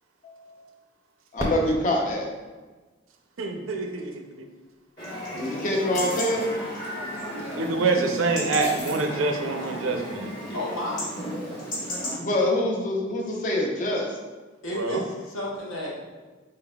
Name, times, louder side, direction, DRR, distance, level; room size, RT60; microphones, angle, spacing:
voice 1, 0.2-0.6 1.3-2.3 5.4-6.5 12.2-14.2, left 1 dB, 40° left, 0 dB, 0.6 m, -25 dB
Fireworks, 1.4-4.1 4.8-4.9 5.6-6.0 7.9-8.1, equal, 15° right, 0.5 m, -37 dB
voice 2, 3.4-4.4 7.4-10.3 14.7-15.0, right 3 dB, 90° right, 3 dB, 0.5 m, -26 dB
Chatter / Livestock farm animals working animals / Chirp tweet, 5.0-12.2, equal, 60° left, 1.2 m, -34 dB
sound 1, 5.9-6.5 7.5-7.7 8.6-9.0, equal, 20° left, 1.1 m, -39 dB
voice 3, 10.5-11.2 14.6-16.0, left 1 dB, 80° left, -4 dB, 1.0 m, -32 dB
4.1 x 3.7 x 2.3 m, 1.3 s
head